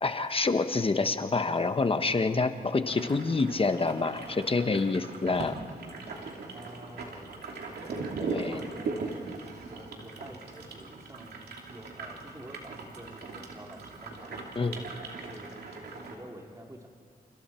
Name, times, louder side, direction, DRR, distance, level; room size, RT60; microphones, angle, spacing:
voice 1, 0.0-5.5 8.2-8.6 14.6-14.8, left 3 dB, 35° left, 9 dB, 1.1 m, -27 dB
sound 1, 2.9-16.2, right 3 dB, 90° right, 2.7 m, -39 dB
voice 2, 6.5-7.5 7.8-9.2 9.7-15.5 15.9-16.9, right 1 dB, 20° right, 1 dB, 3.5 m, -48 dB
29.5 x 29.5 x 4.5 m, 2.6 s
cardioid pair, 80°, 16 cm